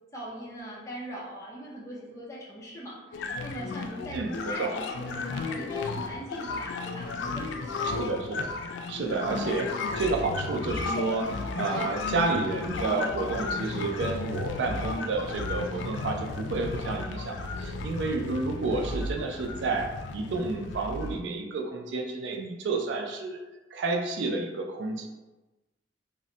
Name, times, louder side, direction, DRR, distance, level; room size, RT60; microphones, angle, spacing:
voice 1, 0.1-8.0, right 1 dB, 15° left, -5 dB, 0.6 m, -41 dB
sound 1, 3.1-21.2, left 3 dB, 75° left, 0.3 m, -34 dB
voice 2, 4.1-4.7 8.0-8.5 8.9-23.4 23.7-25.1, right 3 dB, 70° right, 2 dB, 0.4 m, -30 dB
2.2 x 2.1 x 3.7 m, 1.1 s
head